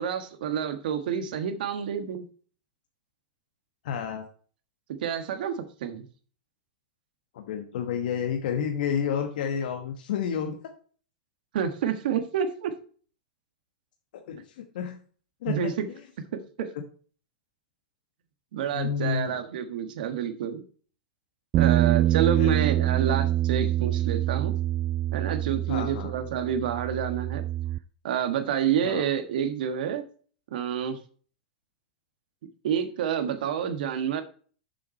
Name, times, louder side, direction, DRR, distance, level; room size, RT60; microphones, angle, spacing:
voice 1, 0.0-2.3 5.0-6.0 11.5-12.7 15.4-15.8 16.6-16.7 18.5-20.6 21.6-24.5 25.1-27.4 28.0-30.0 30.5-31.0 32.6-34.2, right 8 dB, 70° right, 8 dB, 1.4 m, -28 dB
voice 2, 3.8-4.3 7.3-10.6 14.1-15.0 15.4-15.7 16.6-16.7 18.7-19.4 22.4-22.6 25.7-26.1 28.8-29.0, left 7 dB, 70° left, 5 dB, 1.2 m, -30 dB
Bass guitar, 21.5-27.8, right 13 dB, 30° right, 0.4 m, -25 dB
7.1 x 6.1 x 4.3 m, 0.42 s
hypercardioid pair, 120°, 5 cm